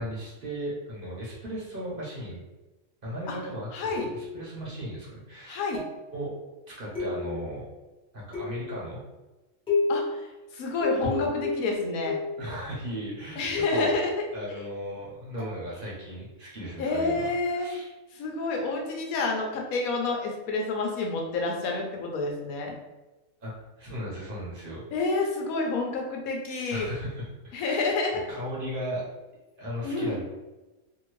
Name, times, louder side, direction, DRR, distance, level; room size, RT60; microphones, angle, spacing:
voice 1, 0.0-2.4 3.0-5.7 6.1-6.3 6.7-7.6 8.1-9.0 11.1-11.3 12.4-14.0 14.3-17.2 17.5-17.9 23.4-24.8 26.7-27.9 28.3-29.0 29.6-30.2, equal, 45° right, -6 dB, 1.0 m, -36 dB
voice 2, 3.7-4.1 5.5-5.8 9.9-12.2 13.4-14.6 16.8-17.7 18.1-22.8 24.9-26.9 27.5-28.2 29.8-30.2, left 3 dB, 90° left, 1 dB, 1.1 m, -29 dB
sound 1, 3.9-4.5 5.7-6.1 6.9-7.6 8.3-8.8 9.7-10.1 10.8-12.4 13.5-13.9 15.4-15.6, left 3 dB, 5° left, 1.1 m, -31 dB
2.7 x 2.6 x 3.0 m, 1.1 s
omnidirectional pair, 1.5 m